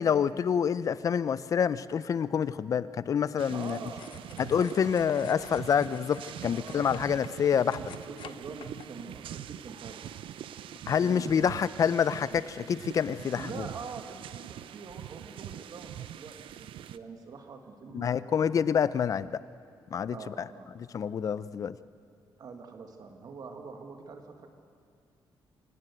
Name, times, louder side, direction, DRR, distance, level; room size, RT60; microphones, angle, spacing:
voice 1, 0.0-3.8 4.4-7.8 10.9-13.6 17.9-19.4 19.9-20.3 20.8-21.8, left 7 dB, 40° left, 16 dB, 0.5 m, -27 dB
sound 1, 3.4-17.0, right 10 dB, 90° right, 0.7 m, -44 dB
sound 2, 3.5-8.9, left 9 dB, 70° left, 0.9 m, -51 dB
voice 2, 3.5-4.9 6.5-7.0 7.4-10.0 11.0-11.6 12.3-12.4 13.4-18.5 20.1-20.7 22.4-24.5, right 4 dB, 45° right, 4 dB, 1.6 m, -45 dB
26.5 x 17.5 x 8.0 m, 2.3 s
wide cardioid pair, 165°, 9 cm